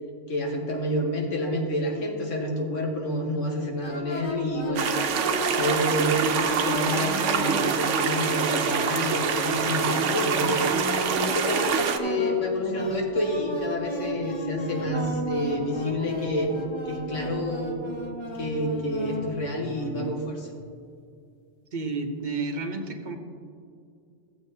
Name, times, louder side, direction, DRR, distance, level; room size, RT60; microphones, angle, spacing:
voice 1, 0.3-5.0 5.3-10.8 11.2-16.5 16.9-17.8 18.4-20.5, left 1 dB, 90° left, 1 dB, 1.7 m, -28 dB
sound 1, 3.8-20.1, left 1 dB, 25° left, 1.0 m, -34 dB
sound 2, 4.8-12.0, right 7 dB, 80° right, 1.0 m, -25 dB
voice 2, 21.7-23.2, right 3 dB, 45° right, 5 dB, 0.9 m, -31 dB
15.0 x 8.0 x 2.7 m, 2.3 s
omnidirectional pair, 1.2 m